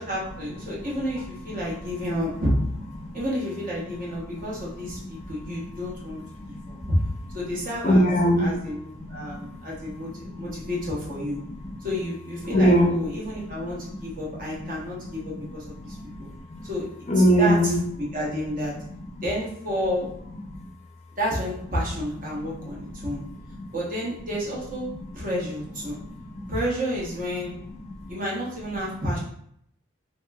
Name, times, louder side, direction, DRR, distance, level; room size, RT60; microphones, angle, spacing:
voice 1, 0.0-2.5 3.1-6.2 6.5-7.0 7.3-8.1 8.4-11.4 11.8-16.3 16.6-16.8 17.4-17.7 18.0-18.7 19.2-20.1 21.2-23.2 23.7-24.9 25.1-26.0 26.5-27.6 28.1-29.2, equal, 45° right, -5 dB, 0.9 m, -30 dB
voice 2, 6.4-6.9 7.5-8.4 9.0-9.6 9.8-10.6 11.4-11.9 12.5-12.9 13.2-13.9 15.1-15.5 15.8-16.6 17.1-17.8 19.1-19.2 20.5-20.7 22.3-23.1 23.5-23.7 24.9-25.0 25.9-26.5 27.6-28.1, equal, 35° left, 0 dB, 0.5 m, -25 dB
3.1 x 2.9 x 2.2 m, 0.69 s
head